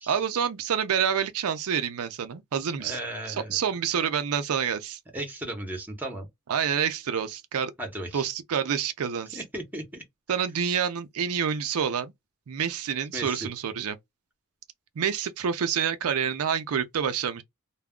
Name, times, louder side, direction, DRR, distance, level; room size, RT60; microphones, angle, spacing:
voice 1, 0.1-3.0 3.3-5.0 6.5-7.7 8.1-9.4 10.3-12.1 12.5-14.0 15.0-17.4, right 7 dB, 75° right, 0.4 m, -28 dB
voice 2, 2.8-3.6 5.1-6.3 7.8-8.2 9.3-10.0 13.1-13.5, right 1 dB, 10° right, 0.8 m, -35 dB
2.3 x 2.0 x 3.5 m
head